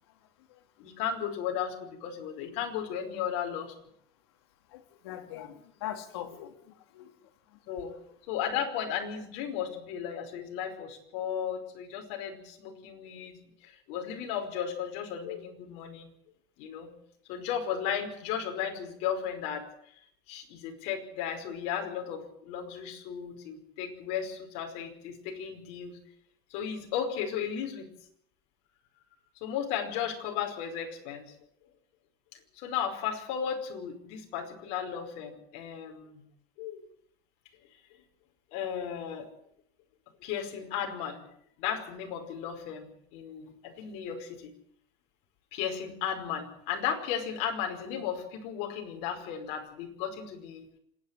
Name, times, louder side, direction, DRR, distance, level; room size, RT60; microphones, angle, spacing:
voice 1, 0.8-3.7 7.7-7.9 8.3-16.1 16.6-16.9 17.3-19.7 20.3-26.0 26.5-27.9 29.4-31.3 32.3-36.2 36.6-36.8 38.5-39.3 40.2-41.2 41.6-44.5 45.5-50.6, left 8 dB, 60° left, 5.2 m, -35 dB
voice 2, 4.7-7.1 7.5-7.6, left 11 dB, 80° left, 2.9 m, -42 dB
26.0 x 10.5 x 9.9 m
supercardioid pair, 140°, 14 cm